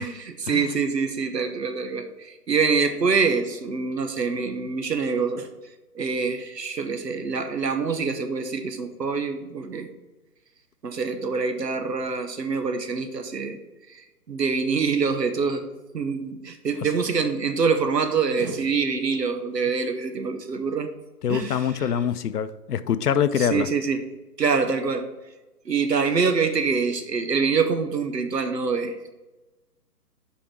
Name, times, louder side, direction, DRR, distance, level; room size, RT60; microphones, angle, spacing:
voice 1, 0.0-5.5 5.9-9.9 10.8-13.6 14.3-15.7 15.9-20.9 21.3-21.6 23.5-24.0 24.4-25.0 25.7-29.1, right 5 dB, 85° right, 1.1 m, -25 dB
voice 2, 21.2-23.7, left 8 dB, 70° left, 0.6 m, -24 dB
5.2 x 5.0 x 6.0 m
figure-of-eight pair, 140°, 48 cm